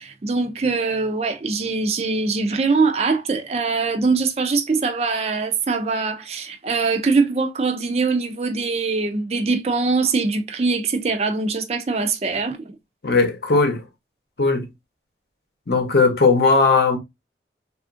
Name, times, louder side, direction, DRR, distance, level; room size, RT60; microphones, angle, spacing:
voice 1, 0.0-12.7, right 4 dB, 35° right, 0.4 m, -22 dB
voice 2, 13.0-13.8 14.4-14.7 15.7-17.0, left 4 dB, 65° left, 0.8 m, -17 dB
3.4 x 2.4 x 2.4 m
head